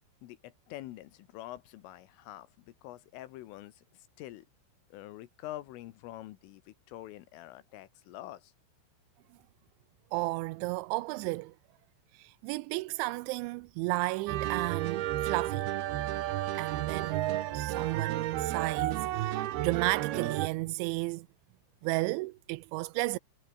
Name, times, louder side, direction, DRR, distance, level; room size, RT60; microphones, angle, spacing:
voice 1, 0.2-4.5 4.9-8.5, left 15 dB, 80° left, 3.7 m, -46 dB
voice 2, 10.1-11.5 12.1-15.7 16.5-21.3 21.8-23.2, right 22 dB, 85° right, 2.7 m, -33 dB
sound 1, 14.3-20.5, right 14 dB, 70° right, 2.6 m, -32 dB
omnidirectional pair, 5.9 m